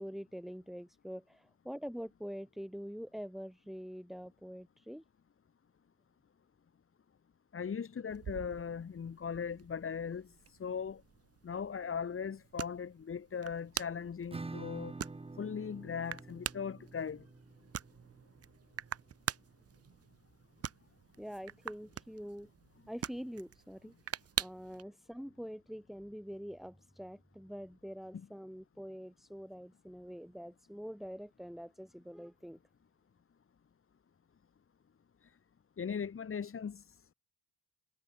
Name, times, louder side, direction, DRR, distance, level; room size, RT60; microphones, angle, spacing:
voice 1, 0.0-5.0 21.2-22.5 22.9-23.9 24.4-32.6, equal, ahead, 6.1 m, -45 dB
voice 2, 7.5-11.0 11.4-14.9 15.4-17.2 28.1-28.3 35.8-36.9, left 6 dB, 45° left, 6.7 m, -39 dB
sound 1, 8.1-24.8, right 9 dB, 50° right, 1.8 m, -45 dB
Acoustic guitar / Strum, 14.3-19.7, right 3 dB, 20° right, 3.8 m, -48 dB
cardioid pair, 90°, 30 cm